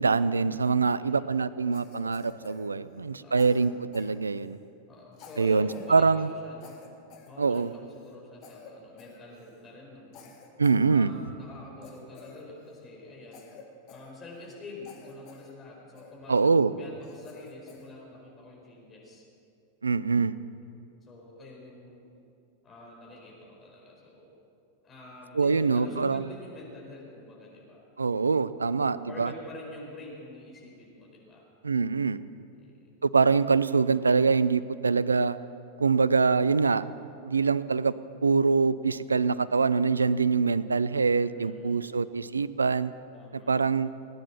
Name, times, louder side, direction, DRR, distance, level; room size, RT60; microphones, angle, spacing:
voice 1, 0.0-4.6 5.4-6.3 7.4-7.7 10.6-11.1 16.3-16.7 19.8-20.3 25.3-26.2 28.0-29.3 31.6-32.2 33.0-35.4 35.8-36.9 37.2-37.9 38.2-42.9 43.3-43.9, right 4 dB, 75° right, 17 dB, 0.4 m, -24 dB
voice 2, 0.8-1.2 1.6-1.7 2.7-3.6 4.8-6.8 7.2-10.3 10.9-13.5 13.9-16.4 16.8-19.2 20.7-22.0 22.6-24.3 24.8-27.8 28.6-31.4 32.5-33.0 41.3-42.1 43.1-43.6, left 2 dB, 20° left, -3 dB, 4.9 m, -47 dB
Cough, 1.7-3.1 3.4-4.6 5.1-5.9 6.2-6.3 6.6-8.2 8.4-8.7 9.0-9.6 10.1-11.3 11.8-12.9 13.3-14.6 14.8-15.5 16.0-16.5 17.0-17.9, left 5 dB, 40° left, 2.0 m, -51 dB
18.5 x 9.6 x 7.0 m, 2.5 s
figure-of-eight pair, 90°, 0 cm